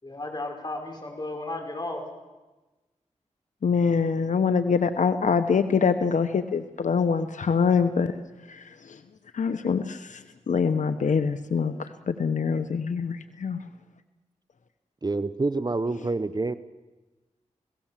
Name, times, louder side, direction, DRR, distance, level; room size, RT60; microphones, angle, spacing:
voice 1, 0.0-2.0, left 2 dB, 35° left, 3 dB, 5.5 m, -34 dB
voice 2, 3.6-8.1 8.5-9.0 9.3-13.6, left 5 dB, 80° left, 10 dB, 1.0 m, -25 dB
voice 3, 15.0-16.5, right 3 dB, 35° right, 13 dB, 0.9 m, -27 dB
29.5 x 17.5 x 7.5 m, 1.1 s
wide cardioid pair, 65°, 13 cm